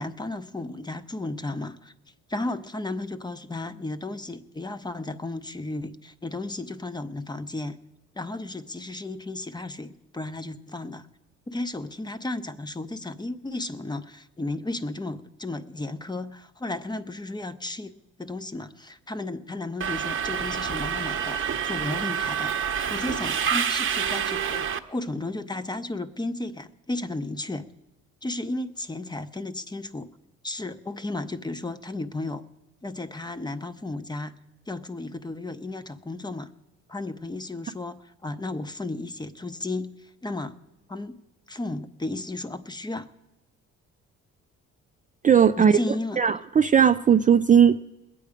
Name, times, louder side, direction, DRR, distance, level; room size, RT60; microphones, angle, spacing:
voice 1, 0.0-1.9 2.3-7.8 8.1-11.1 11.5-17.9 18.2-22.5 22.9-27.7 28.2-30.1 30.4-32.4 32.8-34.3 34.7-36.5 36.9-40.6 40.9-41.2 41.5-43.1 45.6-46.2, left 2 dB, 15° left, 12 dB, 0.7 m, -34 dB
Subway metro underground, 19.8-24.8, right 8 dB, 45° right, 0.9 m, -27 dB
voice 2, 45.2-45.8 46.2-47.8, right 7 dB, 25° right, 8 dB, 0.4 m, -17 dB
20.5 x 8.5 x 5.0 m, 1.0 s
cardioid pair, 90°, 30 cm